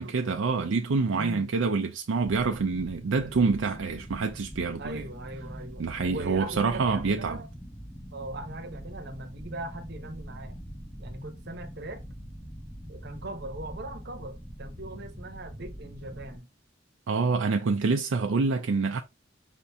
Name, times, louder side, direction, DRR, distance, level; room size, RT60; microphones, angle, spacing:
voice 1, 0.0-5.0 5.8-7.4 17.1-19.0, right 4 dB, 80° right, 0.5 m, -26 dB
voice 2, 1.1-1.5 4.8-7.5 8.1-10.6 11.0-12.0 12.9-16.5, right 2 dB, 55° right, 0.9 m, -40 dB
sound 1, 2.2-16.4, equal, 5° left, 0.9 m, -43 dB
5.1 x 2.8 x 3.4 m
head